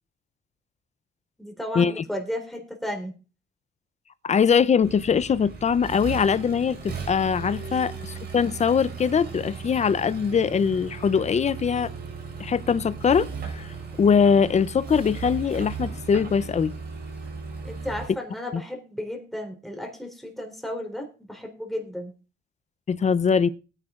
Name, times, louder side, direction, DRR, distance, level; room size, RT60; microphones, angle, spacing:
voice 1, 1.4-3.1 7.7-7.8 17.6-22.1, left 1 dB, ahead, 3.5 m, -34 dB
voice 2, 4.2-11.9 12.4-16.7 18.5-18.6 22.9-23.5, left 6 dB, 35° left, 0.6 m, -22 dB
Accelerating revving vroom, 4.8-18.1, right 5 dB, 55° right, 4.2 m, -36 dB
19.5 x 9.8 x 2.5 m
cardioid pair, 90°, 20 cm